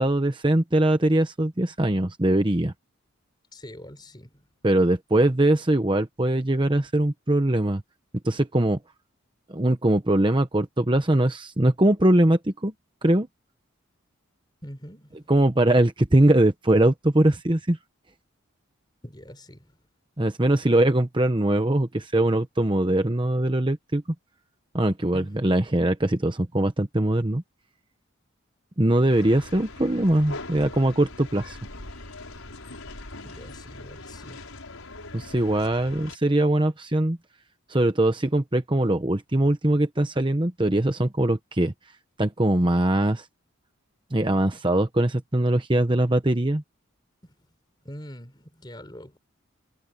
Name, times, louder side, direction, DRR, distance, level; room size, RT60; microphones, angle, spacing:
voice 1, 0.0-2.7 4.6-7.8 8.2-8.8 9.5-12.7 13.0-13.3 15.3-17.8 20.2-24.0 24.7-27.4 28.8-31.6 35.1-37.2 37.7-41.7 42.2-43.3 44.1-46.6, right 1 dB, 25° right, 1.0 m, -22 dB
voice 2, 3.5-4.5 14.6-15.3 19.0-19.8 25.1-25.5 33.2-34.6 47.2-47.4 47.8-49.2, equal, 20° left, 4.0 m, -43 dB
sound 1, 29.1-36.2, left 2 dB, 85° left, 6.1 m, -41 dB
head